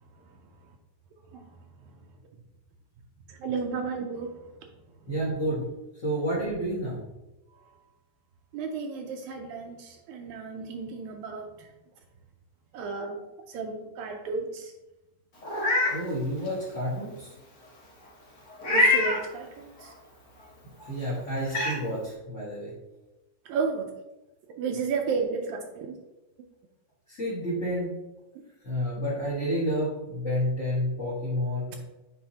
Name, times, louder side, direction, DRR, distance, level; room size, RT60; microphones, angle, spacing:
voice 1, 3.3-4.5 8.5-11.7 12.7-13.2 13.5-14.7 18.7-19.9 23.5-23.9 24.6-26.0, right 4 dB, 80° right, 2 dB, 1.9 m, -33 dB
voice 2, 5.1-5.6 6.0-7.0 15.9-17.3 20.9-22.7 27.1-27.9 28.6-31.8, equal, 35° left, -9 dB, 1.3 m, -30 dB
Meow, 15.4-16.0 16.5-16.6 18.6-19.2 20.8-20.9 21.5-21.8, left 2 dB, 60° left, 0.7 m, -23 dB
8.8 x 4.0 x 2.8 m, 1.0 s
omnidirectional pair, 3.4 m